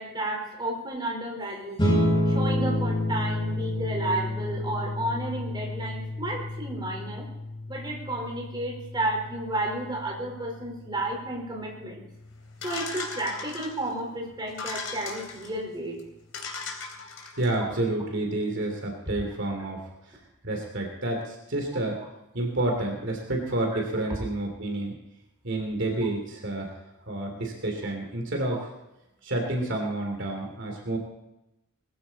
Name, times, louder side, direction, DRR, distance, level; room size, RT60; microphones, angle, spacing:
voice 1, 0.0-1.8 2.3-7.3 7.7-12.0 12.6-16.0 23.7-23.8, right 1 dB, 20° right, -1 dB, 4.3 m, -32 dB
sound 1, 1.8-12.6, left 1 dB, 20° left, 4.7 m, -30 dB
sound 2, 12.6-13.9 14.5-15.5 16.0-16.1 16.3-17.5, left 4 dB, 75° left, 3.4 m, -37 dB
voice 2, 17.4-19.8 20.1-20.2 20.4-22.0 22.3-24.9 25.4-26.7 27.1-28.7 29.2-31.0, right 2 dB, 60° right, 1 dB, 2.9 m, -29 dB
20.5 x 15.0 x 4.2 m, 0.92 s
head